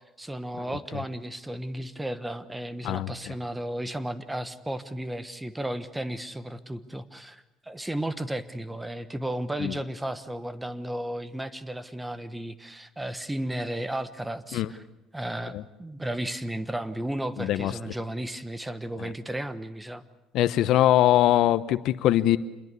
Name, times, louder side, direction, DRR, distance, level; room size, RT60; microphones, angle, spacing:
voice 1, 0.2-14.8 15.1-20.0, right 1 dB, 10° right, 13 dB, 1.3 m, -34 dB
voice 2, 17.4-17.7 19.0-19.1 20.3-22.4, left 13 dB, 70° left, 14 dB, 1.0 m, -22 dB
27.0 x 22.0 x 8.4 m, 0.96 s
cardioid pair, 120°, 0 cm